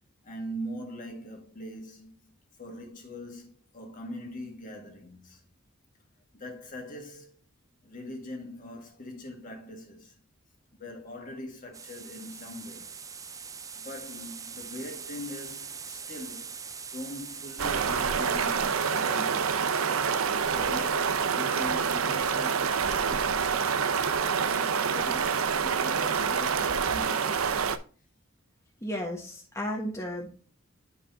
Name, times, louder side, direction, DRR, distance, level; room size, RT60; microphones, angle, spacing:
voice 1, 0.2-2.3 2.6-5.4 6.3-7.4 7.8-10.2 10.8-13.0 13.8-16.6 16.9-19.7 20.5-23.8 24.5-27.5, left 1 dB, 40° left, 1.7 m, -42 dB
sound 1, 11.7-22.8, right 6 dB, 15° right, 0.4 m, -44 dB
sound 2, 17.6-27.8, right 6 dB, 80° right, 0.6 m, -27 dB
voice 2, 28.8-30.3, equal, 15° left, 1.2 m, -33 dB
9.7 x 4.9 x 2.7 m
head